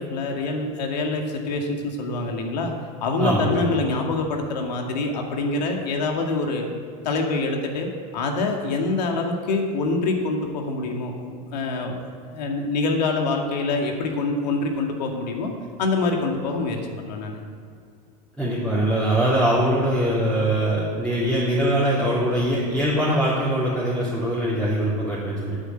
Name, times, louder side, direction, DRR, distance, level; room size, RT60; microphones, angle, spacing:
voice 1, 0.0-2.7 3.0-6.7 7.0-12.0 12.2-15.5 15.8-17.4, left 3 dB, 90° left, 2 dB, 2.0 m, -25 dB
voice 2, 3.2-3.7 18.4-25.6, right 1 dB, ahead, -8 dB, 3.3 m, -22 dB
9.5 x 8.6 x 7.8 m, 2.3 s
supercardioid pair, 125°, 21 cm